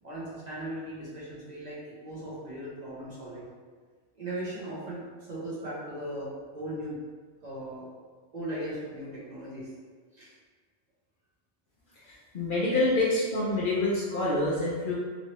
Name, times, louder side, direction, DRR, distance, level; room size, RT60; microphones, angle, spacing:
voice 1, 0.0-3.5 4.1-7.0 7.4-7.9 8.3-9.7 10.1-10.3, right 1 dB, 40° right, -8 dB, 0.8 m, -38 dB
voice 2, 12.3-14.9, left 2 dB, 55° left, -7 dB, 0.7 m, -26 dB
3.1 x 2.7 x 2.9 m, 1.5 s
omnidirectional pair, 1.2 m